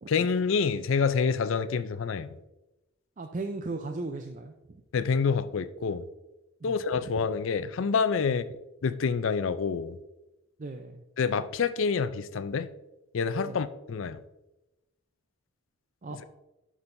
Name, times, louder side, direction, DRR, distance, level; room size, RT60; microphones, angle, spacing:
voice 1, 0.1-2.3 4.9-6.1 6.6-8.5 8.8-10.0 11.2-12.7 13.1-14.2 16.1-16.2, left 5 dB, 65° left, 0.4 m, -27 dB
voice 2, 3.2-4.8 6.7-7.1 8.2-8.3 10.6-11.0 13.5-13.6 16.0-16.2, right 3 dB, 35° right, 0.4 m, -37 dB
11.0 x 6.2 x 2.6 m
head